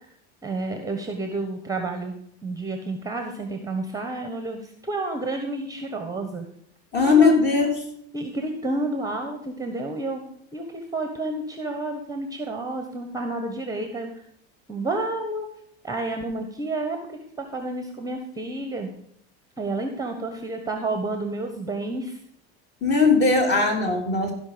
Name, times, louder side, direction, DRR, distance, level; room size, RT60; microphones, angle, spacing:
voice 1, 0.4-2.1 2.4-6.5 7.0-7.3 8.1-10.2 10.5-14.2 14.7-15.5 15.8-18.9 19.6-22.2, right 2 dB, 10° right, 6 dB, 1.2 m, -30 dB
voice 2, 6.9-7.7 22.8-24.3, left 4 dB, 30° left, 1 dB, 3.5 m, -19 dB
16.0 x 5.4 x 5.1 m, 0.71 s
supercardioid pair, 115°, 34 cm